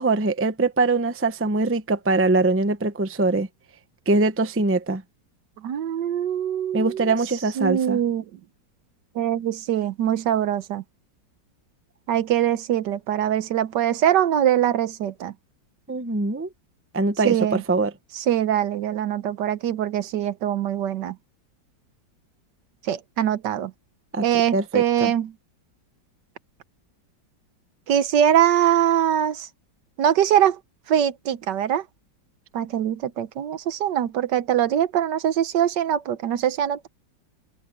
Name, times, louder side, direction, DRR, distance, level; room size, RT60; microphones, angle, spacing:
voice 1, 0.0-3.5 4.1-5.0 6.7-8.0 15.9-16.5 16.9-17.9 24.1-24.2 24.5-25.1, right 3 dB, 15° right, 0.5 m, -22 dB
voice 2, 5.6-7.1 7.6-8.2 9.1-10.8 12.1-15.3 17.2-17.6 18.1-21.2 22.8-23.7 24.2-25.3 27.9-29.5 30.0-30.6 30.9-31.8 32.5-36.9, right 10 dB, 70° right, 1.4 m, -22 dB
omnidirectional pair, 2.0 m